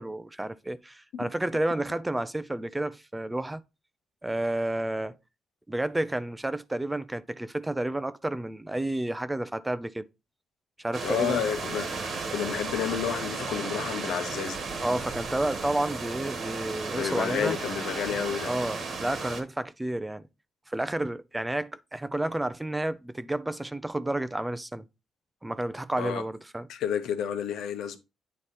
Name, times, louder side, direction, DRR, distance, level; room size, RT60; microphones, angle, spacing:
voice 1, 0.0-3.6 4.2-5.2 5.7-10.1 10.8-11.4 14.8-17.6 18.4-20.2 20.7-24.8 25.4-26.7, right 1 dB, 10° right, 0.5 m, -31 dB
sound 1, 10.9-19.4, right 4 dB, 60° right, 1.5 m, -34 dB
voice 2, 11.0-14.6 16.9-18.5 26.0-26.2 26.7-28.0, left 8 dB, 80° left, 0.9 m, -30 dB
8.9 x 3.2 x 4.1 m
cardioid pair, 90°, 0 cm